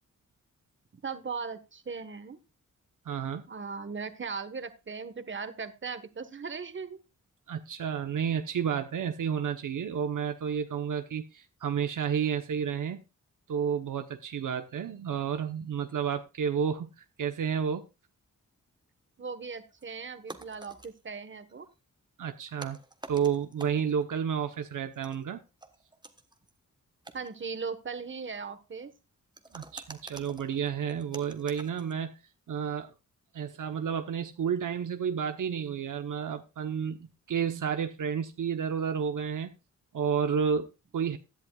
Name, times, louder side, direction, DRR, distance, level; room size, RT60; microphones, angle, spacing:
voice 1, 1.0-2.4 3.5-7.0 19.2-21.7 27.1-28.9, right 5 dB, 35° right, 11 dB, 1.3 m, -38 dB
voice 2, 3.1-3.4 7.5-13.0 13.5-16.9 17.2-17.8 22.2-22.8 23.1-25.4 29.5-32.1 32.5-32.9 33.3-39.5 39.9-41.2, right 7 dB, 70° right, 8 dB, 1.0 m, -31 dB
sound 1, 19.7-19.8 20.3-21.0 21.3-21.7 22.3-24.0 24.9-26.5 27.0-27.6 29.4-31.9, right 2 dB, 15° right, 1.2 m, -48 dB
16.0 x 10.5 x 2.4 m, 0.29 s
wide cardioid pair, 100°, 32 cm